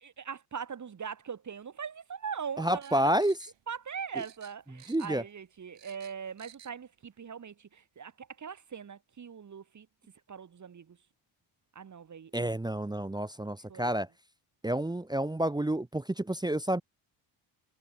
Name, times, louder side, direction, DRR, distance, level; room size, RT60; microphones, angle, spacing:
voice 1, 0.0-3.1 3.7-9.9 10.3-11.0 11.7-12.5 13.7-13.9, right 7 dB, 35° right, 1.6 m, -41 dB
voice 2, 2.6-3.3 4.9-5.2 12.3-14.1 14.6-16.8, right 1 dB, 10° right, 0.9 m, -29 dB
sound 1, 2.6-3.9 4.2-5.3 5.6-6.8 7.1-7.2, right 10 dB, 60° right, 7.2 m, -55 dB
cardioid pair, 80°, 50 cm